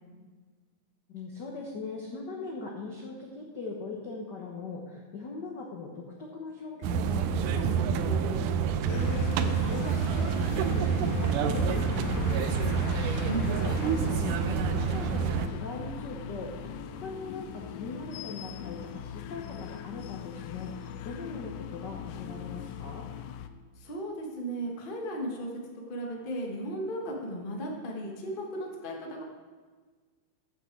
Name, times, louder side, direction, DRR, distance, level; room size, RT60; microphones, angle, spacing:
voice 1, 1.1-23.0, left 3 dB, 60° left, -1 dB, 1.1 m, -40 dB
sound 1, 6.8-15.5, right 7 dB, 85° right, 2.2 m, -28 dB
sound 2, 8.9-23.5, left 9 dB, 90° left, 2.2 m, -39 dB
voice 2, 13.2-13.5 23.8-25.5 25.9-29.2, right 1 dB, 35° left, 0 dB, 0.8 m, -35 dB
14.5 x 8.1 x 4.6 m, 1.5 s
omnidirectional pair, 3.7 m